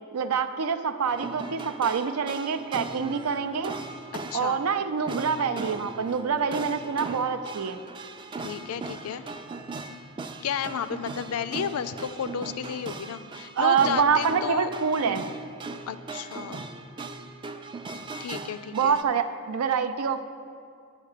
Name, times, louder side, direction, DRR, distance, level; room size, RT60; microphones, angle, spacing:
voice 1, 0.1-3.8 4.3-7.8 13.6-15.3 18.7-20.2, right 6 dB, 85° right, 10 dB, 0.4 m, -26 dB
sound 1, 1.1-19.0, right 3 dB, 20° right, 0.3 m, -39 dB
voice 2, 4.1-4.6 8.4-9.2 10.4-14.7 15.9-16.7 18.2-19.0, left 7 dB, 85° left, 13 dB, 0.4 m, -32 dB
8.1 x 5.3 x 6.6 m, 2.3 s
head